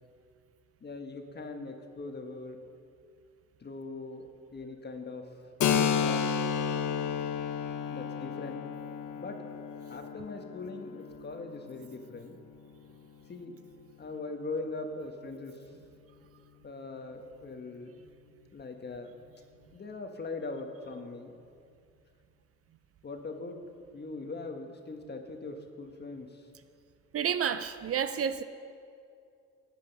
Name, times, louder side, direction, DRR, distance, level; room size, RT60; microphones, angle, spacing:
voice 1, 0.8-2.6 3.6-5.3 6.0-6.6 7.9-8.7 9.2-9.4 9.9-12.4 13.3-13.5 14.0-15.6 16.6-17.9 18.5-19.1 19.7-21.3 23.0-23.6 23.9-26.3, left 3 dB, 35° left, 5 dB, 1.4 m, -41 dB
Keyboard (musical), 5.6-13.0, left 7 dB, 80° left, 0.9 m, -32 dB
voice 2, 27.1-28.4, right 8 dB, 50° right, 12 dB, 0.6 m, -30 dB
15.5 x 9.5 x 5.4 m, 2.4 s
cardioid pair, 90°, 30 cm